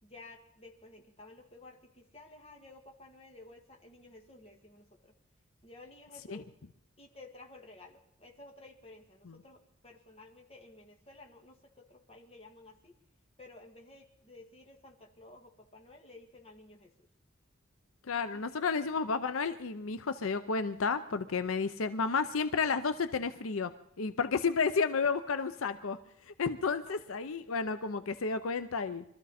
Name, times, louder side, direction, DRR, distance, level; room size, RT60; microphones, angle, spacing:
voice 1, 0.0-5.1 5.6-6.5 7.0-13.0 13.4-17.1 18.3-18.6 26.9-27.0, left 2 dB, 30° left, 2 dB, 2.0 m, -54 dB
voice 2, 18.1-23.7 24.0-26.0 26.4-29.0, left 5 dB, 80° left, 11 dB, 0.7 m, -31 dB
23.5 x 13.5 x 4.2 m, 0.74 s
head